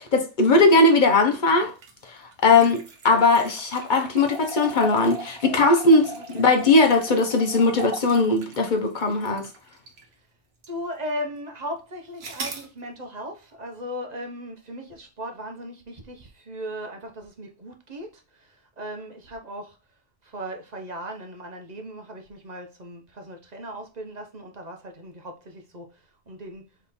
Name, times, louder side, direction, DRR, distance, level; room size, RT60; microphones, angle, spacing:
voice 1, 0.1-1.7 2.0-9.5, left 3 dB, 45° left, 1.0 m, -19 dB
sound 1, 1.7-10.1 10.6-10.7 12.2-12.7, right 2 dB, 65° right, 1.2 m, -38 dB
voice 2, 6.1-6.5 10.7-19.8 20.2-26.0 26.3-26.7, equal, 40° right, 0.9 m, -37 dB
3.6 x 3.3 x 4.2 m
omnidirectional pair, 1.2 m